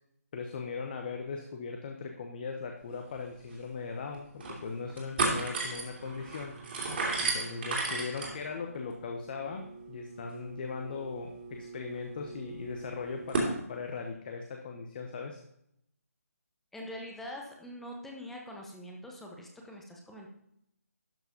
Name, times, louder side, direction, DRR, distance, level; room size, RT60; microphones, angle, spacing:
voice 1, 0.3-6.5 7.2-15.4, left 5 dB, 35° left, 3 dB, 0.9 m, -39 dB
sound 1, 3.2-3.3 3.5-3.6 4.1-4.6 4.9-13.5, right 3 dB, 40° right, 2.8 m, -35 dB
voice 2, 16.7-20.3, left 1 dB, 5° left, 0 dB, 1.0 m, -44 dB
12.0 x 4.7 x 5.2 m, 0.75 s
figure-of-eight pair, 155°, 9 cm